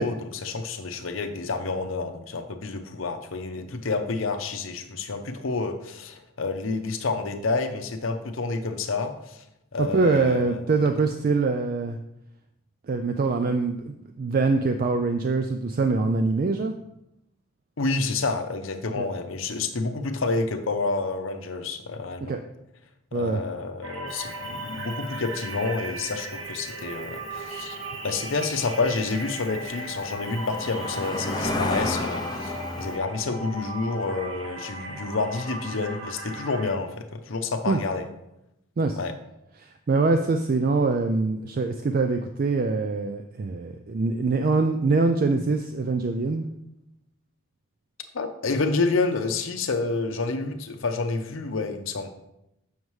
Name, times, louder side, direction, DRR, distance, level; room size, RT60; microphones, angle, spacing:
voice 1, 0.0-9.4 9.7-10.8 17.8-22.4 23.1-27.8 28.0-38.1 39.0-39.1 48.1-52.1, left 3 dB, 75° left, 6 dB, 0.7 m, -29 dB
voice 2, 9.8-12.0 12.9-16.7 19.0-19.1 22.3-22.4 23.1-23.4 37.7-37.8 38.8-39.0 39.6-46.5, right 3 dB, 45° right, 6 dB, 0.3 m, -24 dB
sound 1, 23.8-36.7, right 2 dB, 80° right, 1.0 m, -37 dB
Cricket, 24.1-33.0, left 2 dB, 20° left, 0.5 m, -34 dB
7.2 x 6.3 x 3.1 m, 0.86 s
head